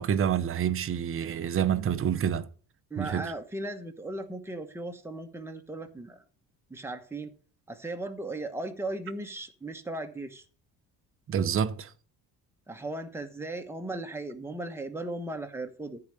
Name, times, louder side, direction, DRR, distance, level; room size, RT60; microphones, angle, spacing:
voice 1, 0.0-2.5 3.0-3.3 11.3-11.9, right 8 dB, 35° right, 0.7 m, -27 dB
voice 2, 2.9-6.2 6.7-7.3 7.7-10.4 12.7-16.0, right 2 dB, 5° right, 1.1 m, -37 dB
14.0 x 4.8 x 6.6 m
cardioid pair, 165°, 39 cm